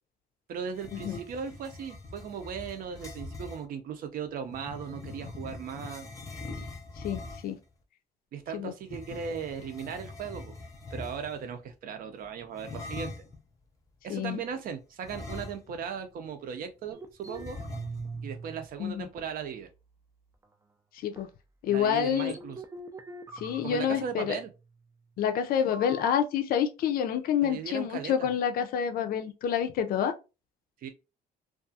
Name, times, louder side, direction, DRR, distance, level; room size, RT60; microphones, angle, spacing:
voice 1, 0.5-6.1 8.3-10.6 10.9-13.2 14.0-17.6 18.2-19.7 21.7-22.6 23.6-24.5 27.4-28.3 30.8-30.9, right 7 dB, 60° right, 0.6 m, -37 dB
sound 1, 0.7-3.6 4.5-7.6 8.8-11.5 12.5-13.4 15.0-15.9 16.2-16.3 17.3-18.2, left 3 dB, 20° left, 0.7 m, -42 dB
voice 2, 7.0-7.6 8.5-8.7 14.1-14.4 18.8-19.1 21.0-21.3 21.6-22.3 23.4-24.4 25.2-30.1, left 9 dB, 60° left, 0.5 m, -28 dB
sound 2, 16.9-18.7 19.0-20.0 20.4-20.5 21.1-21.3 22.0-24.6 25.7-26.2, right 3 dB, 20° right, 0.3 m, -43 dB
2.4 x 2.3 x 2.6 m
cardioid pair, 110°, 17 cm